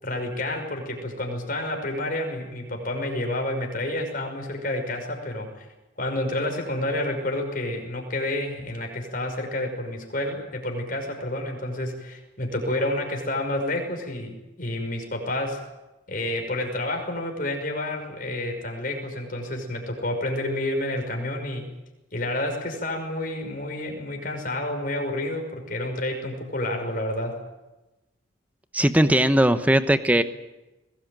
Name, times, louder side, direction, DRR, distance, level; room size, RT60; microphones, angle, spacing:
voice 1, 0.0-5.7 6.0-15.6 16.1-21.7 22.1-27.4, left 1 dB, 45° left, 3 dB, 5.6 m, -29 dB
voice 2, 28.7-30.2, right 1 dB, 10° right, 11 dB, 1.1 m, -19 dB
22.0 x 19.0 x 9.1 m, 1.0 s
head